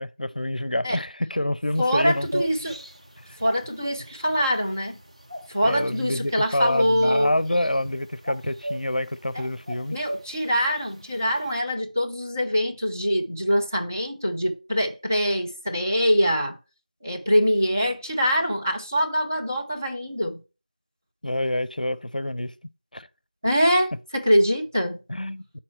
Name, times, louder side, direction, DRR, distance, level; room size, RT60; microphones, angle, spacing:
voice 1, 0.0-2.4 5.6-10.0 21.2-22.5 22.9-23.1 25.1-25.4, left 1 dB, 70° left, 0.5 m, -27 dB
sound 1, 1.7-11.6, right 1 dB, 45° right, 1.3 m, -38 dB
voice 2, 1.8-2.8 3.4-5.0 5.5-7.3 9.3-9.5 9.9-16.6 17.0-20.4 23.4-25.0, equal, 20° right, 0.7 m, -24 dB
6.7 x 4.4 x 5.6 m
figure-of-eight pair, 175°, 5 cm